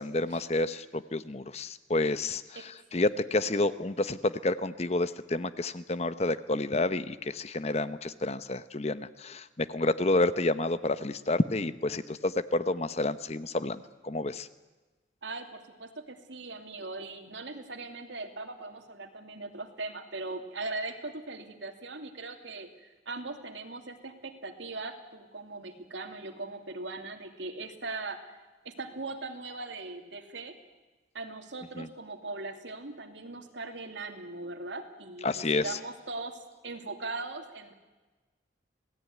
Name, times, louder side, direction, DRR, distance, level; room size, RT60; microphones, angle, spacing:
voice 1, 0.0-14.5 31.8-31.9 35.2-35.8, left 2 dB, 35° left, 13 dB, 0.8 m, -29 dB
voice 2, 15.2-28.4 28.6-30.6 31.1-36.4 36.6-37.7, right 3 dB, 85° right, 5 dB, 2.7 m, -40 dB
27.0 x 17.5 x 9.4 m, 1.2 s
head